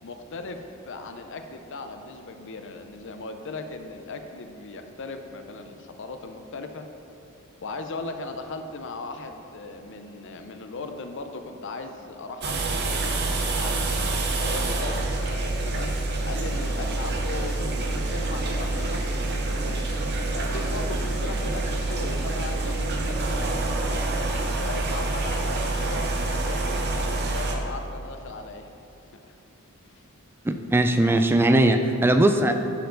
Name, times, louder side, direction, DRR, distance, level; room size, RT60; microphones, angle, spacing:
voice 1, 0.0-6.9 7.6-13.2 13.6-15.9 16.2-19.9 20.3-23.8 24.5-28.7 29.8-30.0, left 3 dB, 60° left, 6 dB, 0.6 m, -38 dB
sound 1, 12.4-27.5, right 2 dB, 50° right, 0.8 m, -27 dB
voice 2, 30.4-32.5, right 1 dB, 10° right, 6 dB, 0.3 m, -20 dB
11.5 x 4.7 x 3.9 m, 2.8 s
head